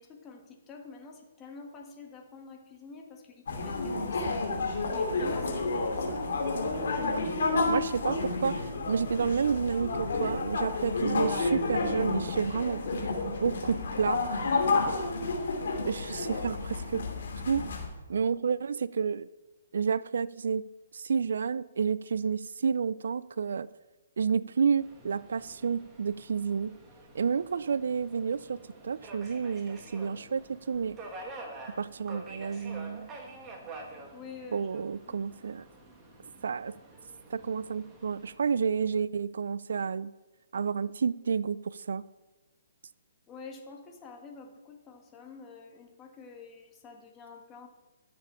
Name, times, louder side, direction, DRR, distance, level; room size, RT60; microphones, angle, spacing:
voice 1, 0.0-4.5 4.9-6.3 14.5-14.9 34.1-35.2 43.3-47.7, left 5 dB, 20° left, 2 dB, 1.7 m, -48 dB
sound 1, 3.5-17.9, left 3 dB, 70° left, 2.7 m, -30 dB
voice 2, 7.7-14.2 15.9-17.0 17.5-17.6 18.1-19.3 19.7-20.7 20.9-23.7 24.2-26.7 27.1-31.0 31.8-33.1 34.5-35.6 36.4-36.8 37.3-40.1 40.5-42.0, right 6 dB, 70° right, 19 dB, 0.4 m, -30 dB
Subway metro underground, 24.8-38.4, right 2 dB, 15° right, 1.8 m, -48 dB
12.5 x 7.1 x 5.6 m, 1.1 s
hypercardioid pair, 145°, 0 cm